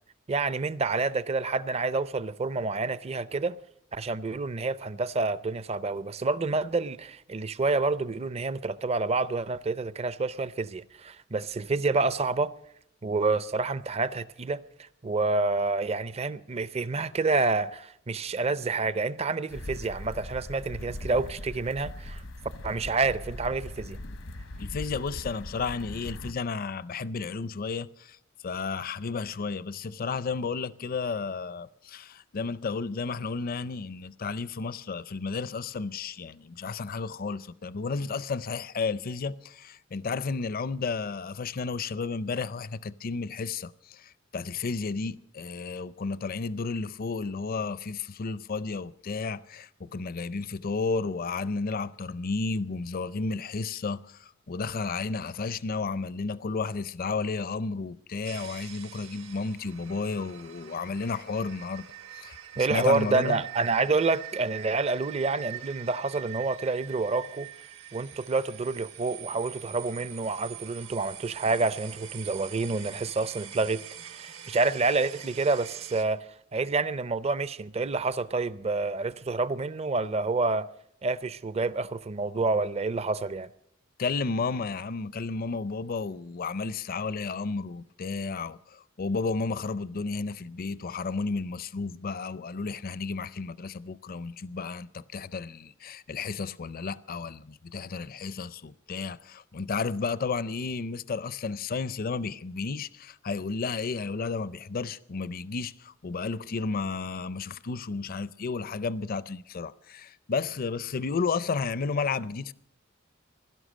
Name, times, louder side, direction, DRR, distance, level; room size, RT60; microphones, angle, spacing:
voice 1, 0.3-3.6 3.9-12.5 13.0-22.2 22.6-24.0 62.6-67.5 67.9-76.2 76.5-80.7 81.0-83.5, right 3 dB, 30° right, 0.5 m, -28 dB
sound 1, 19.5-26.3, left 1 dB, 80° left, 1.0 m, -40 dB
voice 2, 24.6-28.2 28.4-61.8 62.1-63.4 84.0-112.5, left 4 dB, 45° left, 0.5 m, -32 dB
sound 2, 58.2-76.0, right 11 dB, 75° right, 1.5 m, -44 dB
16.5 x 12.5 x 6.3 m
head